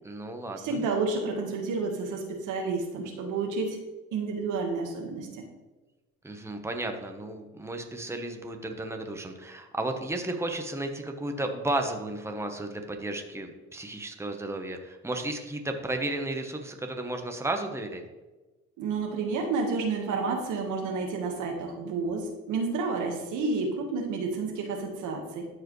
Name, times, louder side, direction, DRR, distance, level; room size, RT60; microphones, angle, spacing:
voice 1, 0.0-0.8 6.2-18.0, right 2 dB, 10° right, 4 dB, 1.0 m, -33 dB
voice 2, 0.6-3.8 4.1-5.4 18.8-25.5, right 4 dB, 90° right, 2 dB, 1.5 m, -30 dB
12.5 x 4.8 x 3.1 m, 1.2 s
cardioid pair, 90°, 30 cm